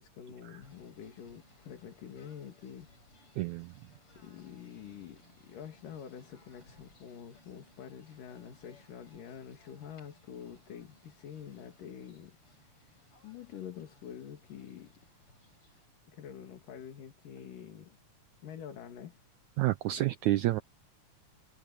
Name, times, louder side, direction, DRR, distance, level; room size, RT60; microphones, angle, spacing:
voice 1, 0.0-2.9 4.2-15.0 16.1-18.0 18.4-19.2, left 8 dB, 70° left, 3.8 m, -47 dB
Singing / Bird, 0.6-15.9, left 2 dB, 40° left, 8.5 m, -63 dB
voice 2, 3.4-3.7 19.6-20.6, right 15 dB, 80° right, 1.8 m, -29 dB
omnidirectional pair, 4.0 m